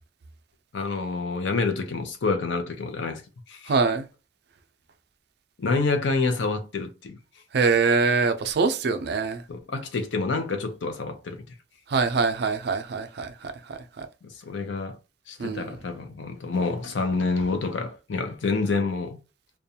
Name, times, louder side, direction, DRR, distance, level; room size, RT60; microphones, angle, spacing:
voice 1, 0.7-3.2 3.5-3.7 5.6-7.2 9.5-11.4 14.2-15.0 15.3-19.2, left 3 dB, 80° left, 0.6 m, -28 dB
voice 2, 3.7-4.0 7.5-9.4 11.9-13.3 13.7-14.1 15.4-15.7, right 4 dB, 60° right, 0.4 m, -24 dB
2.5 x 2.2 x 2.7 m
head